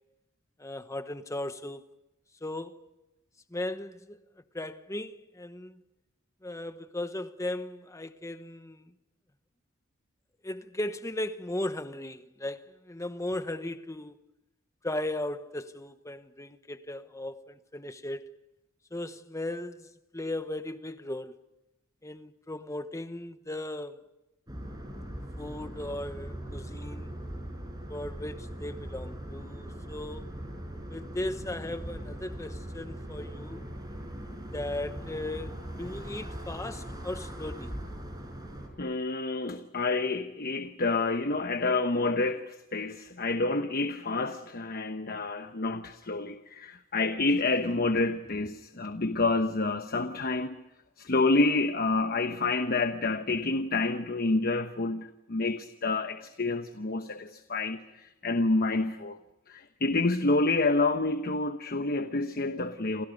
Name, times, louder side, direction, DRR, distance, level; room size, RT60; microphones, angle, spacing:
voice 1, 0.6-1.8 2.4-2.9 3.5-4.2 4.5-5.8 6.4-8.9 10.4-14.2 14.8-18.3 18.9-21.4 22.0-24.0 25.4-27.1 27.9-30.3 30.9-33.6 34.5-37.8, left 1 dB, 15° left, 1.0 m, -37 dB
sound 1, 24.5-38.7, equal, 20° right, 5.4 m, -40 dB
voice 2, 38.8-50.6 51.0-59.2 59.5-63.0, left 3 dB, 45° left, 1.1 m, -28 dB
28.5 x 27.5 x 5.3 m
head